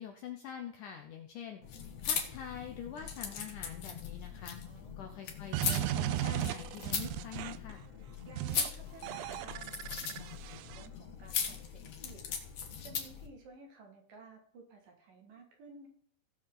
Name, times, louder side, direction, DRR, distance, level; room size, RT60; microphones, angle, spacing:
voice 1, 0.0-1.6 2.0-4.6 5.0-7.8, left 8 dB, 75° left, 4 dB, 1.9 m, -45 dB
sound 1, 1.6-13.3, left 7 dB, 60° left, 1.9 m, -39 dB
voice 2, 4.6-5.2 8.0-12.2 12.8-15.9, right 3 dB, 60° right, 2 dB, 3.3 m, -55 dB
sound 2, 5.5-7.7 8.4-8.7 9.0-10.9, right 14 dB, 85° right, 2.0 m, -36 dB
18.0 x 6.6 x 3.8 m, 0.62 s
omnidirectional pair, 4.6 m